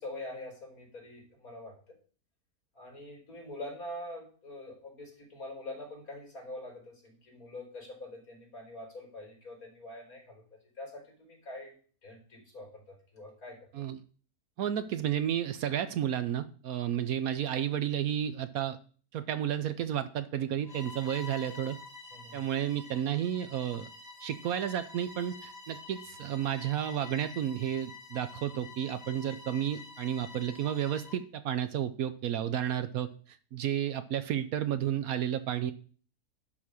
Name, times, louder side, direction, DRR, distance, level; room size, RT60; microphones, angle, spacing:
voice 1, 0.0-2.0 2.7-10.4 10.8-11.8 12.0-13.7 22.1-22.5, left 1 dB, 60° left, -1 dB, 4.1 m, -44 dB
voice 2, 14.6-18.8 19.1-21.8 22.3-23.9 24.2-35.7, right 10 dB, 70° right, 12 dB, 1.0 m, -32 dB
Bowed string instrument, 20.6-31.2, left 3 dB, 25° left, 1.5 m, -48 dB
11.5 x 4.0 x 6.2 m, 0.42 s
omnidirectional pair, 1.7 m